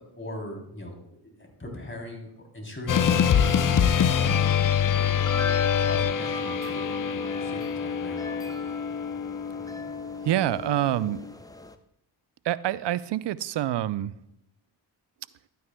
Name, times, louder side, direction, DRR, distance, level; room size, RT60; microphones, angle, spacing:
voice 1, 0.1-4.6 4.9-5.5 5.7-8.5, left 1 dB, 25° left, 1 dB, 3.2 m, -40 dB
sound 1, 2.9-11.2, left 8 dB, 45° left, 0.6 m, -25 dB
sound 2, 2.9-11.7, left 2 dB, 10° left, 0.7 m, -36 dB
voice 2, 10.2-11.2 12.4-14.1, right 13 dB, 60° right, 17 dB, 0.5 m, -26 dB
12.5 x 9.3 x 2.2 m, 0.78 s
supercardioid pair, 45°, 48 cm